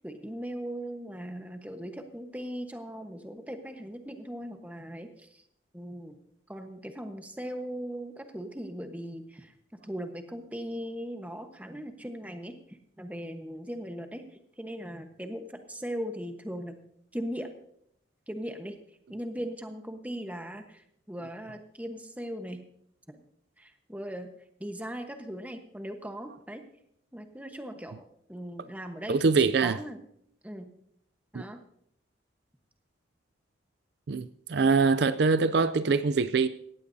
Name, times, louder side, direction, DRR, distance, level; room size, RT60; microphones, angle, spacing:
voice 1, 0.0-5.4 5.7-6.1 6.5-9.5 9.8-14.2 14.6-16.8 17.1-17.5 18.3-18.8 19.1-22.7 23.1-23.2 23.6-24.3 24.6-26.6 27.1-30.0 30.4-30.7 31.3-31.6, equal, 10° right, 1.2 m, -39 dB
voice 2, 29.1-29.8 34.1-36.5, right 4 dB, 60° right, 0.4 m, -24 dB
18.0 x 15.0 x 2.7 m
head